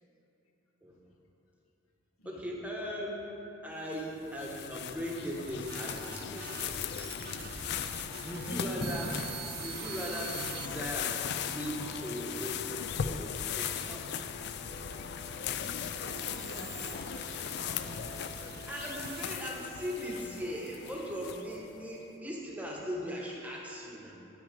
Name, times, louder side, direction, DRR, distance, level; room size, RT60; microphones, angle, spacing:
voice 1, 2.2-3.2 3.6-6.8 8.2-14.0 18.7-24.1, equal, 5° right, -2 dB, 1.0 m, -39 dB
sound 1, 3.9-21.7, left 8 dB, 55° left, 0.3 m, -38 dB
sound 2, 5.1-10.7 11.3-12.9 13.7-19.7, right 12 dB, 50° right, 0.3 m, -47 dB
Organ Music-Verona, 5.7-22.1, equal, 25° left, 0.8 m, -49 dB
voice 2, 15.9-18.3, left 1 dB, 90° left, 2 dB, 1.0 m, -49 dB
9.0 x 6.0 x 5.2 m, 3.0 s
head